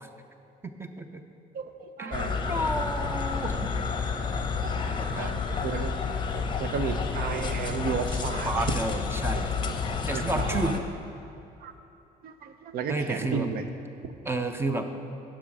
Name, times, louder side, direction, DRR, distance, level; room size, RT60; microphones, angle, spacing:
voice 1, 0.6-1.2 2.0-4.0 4.9-5.4 8.4-9.5 9.9-10.8 12.9-13.5 14.3-14.9, right 2 dB, 15° right, 6 dB, 0.5 m, -31 dB
voice 2, 1.5-2.6 4.6-4.7 5.2-5.9 6.3-9.0 10.1-10.8 11.6-11.7 12.2-13.7 14.0-14.2, right 6 dB, 65° right, 9 dB, 0.7 m, -33 dB
sound 1, 2.1-10.8, left 5 dB, 30° left, 0.7 m, -30 dB
9.9 x 6.3 x 4.8 m, 2.7 s
cardioid pair, 110°, 17 cm